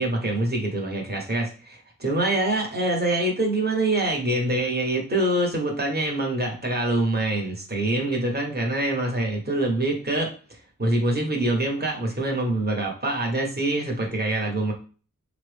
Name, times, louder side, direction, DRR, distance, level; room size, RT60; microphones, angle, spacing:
voice 1, 0.0-10.3 10.8-14.7, right 1 dB, 30° right, 0 dB, 1.0 m, -25 dB
4.3 x 2.0 x 3.2 m, 0.38 s
wide cardioid pair, 45°, 32 cm